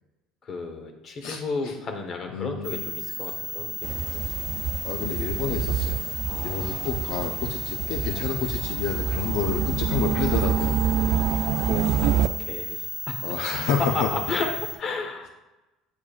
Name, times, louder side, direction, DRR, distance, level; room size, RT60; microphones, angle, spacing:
voice 1, 0.4-4.2 6.3-6.9 11.0-13.2 13.9-14.5 14.8-15.3, left 4 dB, 40° left, 5 dB, 1.0 m, -33 dB
voice 2, 1.2-1.7 2.3-2.8 4.8-6.0 6.4-10.8 13.2-14.2, left 6 dB, 70° left, 4 dB, 0.5 m, -29 dB
sound 1, 2.6-14.7, left 1 dB, 5° right, 0.7 m, -34 dB
sound 2, 3.8-12.3, right 9 dB, 65° right, 0.3 m, -27 dB
8.4 x 4.8 x 2.4 m, 1.1 s
cardioid pair, 120°, 0 cm